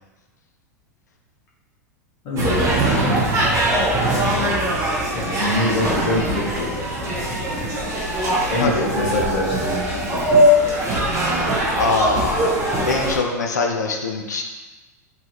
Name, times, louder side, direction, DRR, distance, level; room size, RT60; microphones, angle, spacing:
voice 1, 2.2-3.3 5.1-7.6 8.5-10.2, left 1 dB, 55° left, -6 dB, 1.1 m, -25 dB
sound 1, 2.4-13.2, equal, 35° right, 0.9 m, -21 dB
voice 2, 8.6-9.1 11.8-14.4, left 4 dB, 80° left, 2 dB, 0.4 m, -23 dB
3.0 x 2.5 x 2.9 m, 1.2 s
hypercardioid pair, 95°, 9 cm